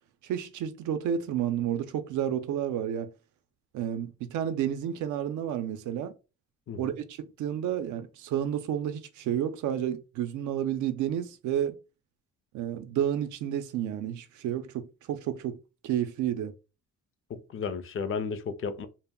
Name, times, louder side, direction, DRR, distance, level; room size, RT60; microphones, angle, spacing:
voice 1, 0.2-3.1 3.7-6.1 6.8-11.8 12.5-15.6 15.8-16.5, right 10 dB, 75° right, 0.5 m, -31 dB
voice 2, 17.3-18.9, left 5 dB, 45° left, 0.5 m, -33 dB
2.2 x 2.0 x 3.5 m
cardioid pair, 90°, 30 cm